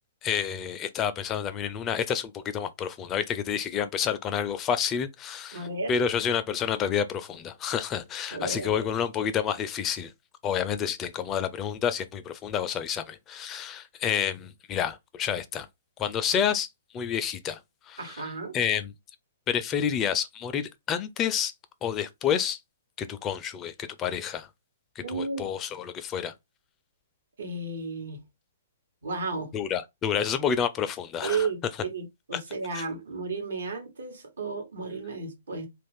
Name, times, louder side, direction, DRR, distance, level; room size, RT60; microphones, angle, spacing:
voice 1, 0.2-10.1 10.4-15.7 16.0-16.7 16.9-17.6 17.9-18.2 18.5-18.9 19.5-21.5 21.8-22.6 23.0-24.5 25.0-26.3 29.5-31.5 32.3-32.4 32.7-32.8, left 8 dB, 25° left, 0.3 m, -29 dB
voice 2, 5.5-5.9 8.3-8.9 18.0-18.6 25.0-25.5 27.4-28.2 29.0-29.5 31.2-31.6 31.9-35.7, right 4 dB, 75° right, 1.0 m, -33 dB
2.4 x 2.3 x 3.5 m
hypercardioid pair, 130°, 0 cm